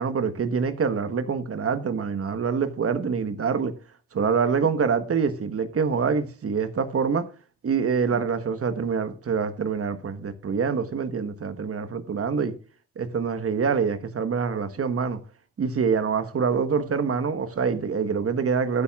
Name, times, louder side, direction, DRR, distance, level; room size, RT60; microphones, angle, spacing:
voice 1, 0.0-3.7 4.1-7.3 7.6-12.5 13.0-15.2 15.6-18.8, right 6 dB, 45° right, 1.4 m, -25 dB
15.5 x 8.4 x 2.4 m
hypercardioid pair, 50°, 33 cm